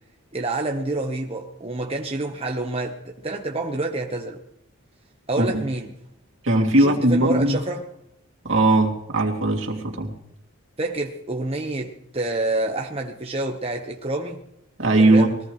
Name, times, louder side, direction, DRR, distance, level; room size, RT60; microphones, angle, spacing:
voice 1, 0.3-4.4 5.3-6.0 6.8-7.9 10.8-14.5 15.0-15.3, right 2 dB, 30° right, 1.2 m, -28 dB
voice 2, 6.4-7.6 8.4-10.1 14.8-15.3, right 2 dB, 60° right, 2.8 m, -19 dB
22.0 x 18.5 x 3.2 m
head